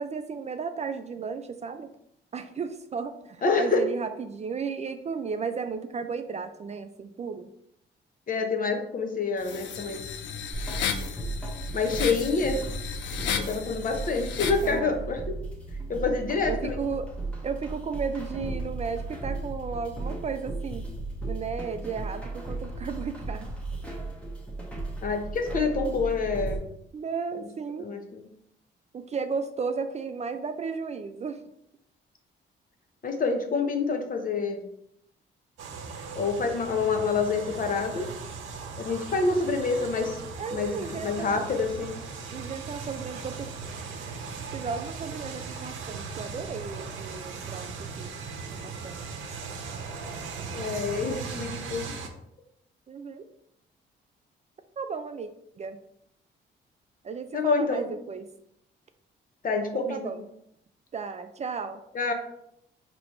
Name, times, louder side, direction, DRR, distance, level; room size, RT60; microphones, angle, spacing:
voice 1, 0.0-1.9 2.3-7.5 14.6-15.0 16.5-17.1 17.4-20.8 21.2-23.5 26.9-27.9 28.9-31.4 40.4-41.4 42.3-43.5 44.4-48.1 48.5-49.1 52.9-53.2 54.8-55.3 55.6-55.8 57.0-58.3 59.7-60.2 60.9-61.8, right 5 dB, 35° right, 8 dB, 0.4 m, -34 dB
voice 2, 3.4-3.8 8.3-10.0 11.7-12.6 13.4-15.4 15.9-16.8 25.0-26.6 27.8-28.2 33.0-34.6 36.1-38.1 38.8-40.2 40.5-41.9 50.5-51.9 57.3-57.9 59.4-60.1 61.9-62.1, left 4 dB, 45° left, 5 dB, 0.8 m, -27 dB
sound 1, 9.4-14.7, left 7 dB, 70° left, 0.5 m, -34 dB
sound 2, 10.5-26.6, right 2 dB, 5° left, 1.0 m, -35 dB
sound 3, 35.6-52.1, right 5 dB, 75° right, 0.7 m, -38 dB
4.8 x 3.0 x 3.1 m, 0.75 s
cardioid pair, 90°, 20 cm